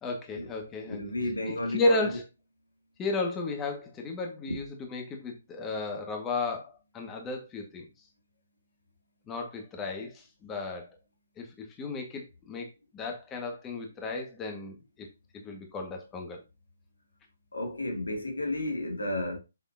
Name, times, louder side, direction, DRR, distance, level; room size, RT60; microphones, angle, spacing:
voice 1, 0.0-1.0 1.5-2.2 3.0-7.8 9.3-10.9 11.4-12.7 12.9-15.1 15.3-16.4, left 2 dB, 15° left, 1.7 m, -33 dB
voice 2, 0.9-2.0 17.5-19.4, left 1 dB, 85° left, 2.4 m, -32 dB
7.3 x 6.4 x 2.8 m
figure-of-eight pair, 140°, 0 cm